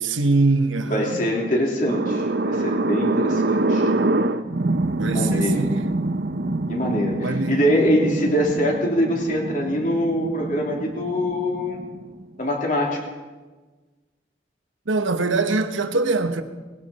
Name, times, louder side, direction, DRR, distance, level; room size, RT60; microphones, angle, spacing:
voice 1, 0.0-1.2 5.0-5.8 7.2-7.6 14.9-16.4, right 3 dB, 90° right, 1.1 m, -23 dB
voice 2, 0.9-3.9 5.0-5.7 6.7-11.8 12.4-13.0, equal, 45° left, 2.9 m, -23 dB
sound 1, 1.9-12.2, right 2 dB, 55° right, 0.7 m, -25 dB
19.5 x 17.0 x 4.2 m
head